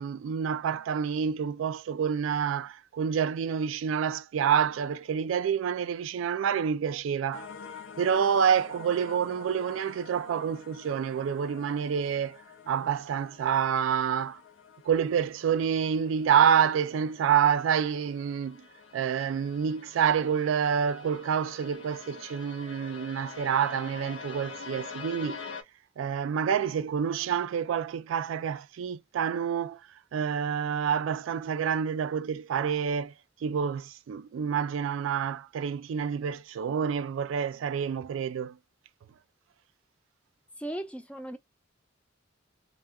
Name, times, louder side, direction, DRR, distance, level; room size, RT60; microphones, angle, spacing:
voice 1, 0.0-7.5 8.0-12.4 12.7-14.4 14.9-18.6 18.9-25.4 26.0-29.8 30.1-33.1 33.4-38.6, right 7 dB, 85° right, 0.3 m, -28 dB
sound 1, 7.3-25.6, left 5 dB, 85° left, 0.5 m, -46 dB
voice 2, 40.6-41.4, right 1 dB, 5° left, 0.3 m, -37 dB
2.2 x 2.1 x 3.4 m
head